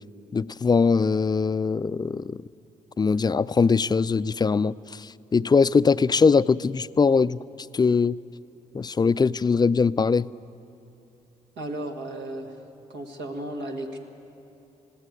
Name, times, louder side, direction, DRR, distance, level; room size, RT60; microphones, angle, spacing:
voice 1, 0.3-2.4 3.0-7.4 7.7-8.2 8.7-10.3, left 5 dB, 25° left, 0.4 m, -21 dB
voice 2, 11.6-12.6 12.9-14.0, right 1 dB, 70° right, 2.0 m, -34 dB
20.0 x 15.5 x 9.5 m
hypercardioid pair, 45°, 18 cm